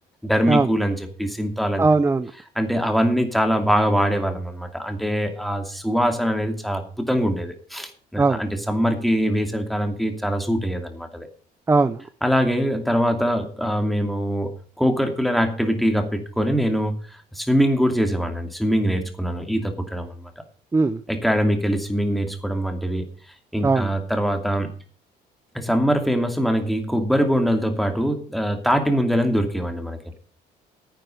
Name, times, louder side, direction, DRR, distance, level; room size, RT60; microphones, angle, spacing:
voice 1, 0.2-1.9 2.6-11.3 12.2-14.5 14.8-17.0 17.3-20.2 21.1-23.1 23.5-24.7 25.5-30.0, equal, ahead, 5 dB, 2.6 m, -23 dB
voice 2, 1.8-2.3 8.2-8.4 11.7-12.0 20.7-21.0 23.6-23.9, right 3 dB, 15° right, 13 dB, 0.6 m, -19 dB
10.5 x 9.0 x 6.5 m, 0.42 s
cardioid pair, 110°, 17 cm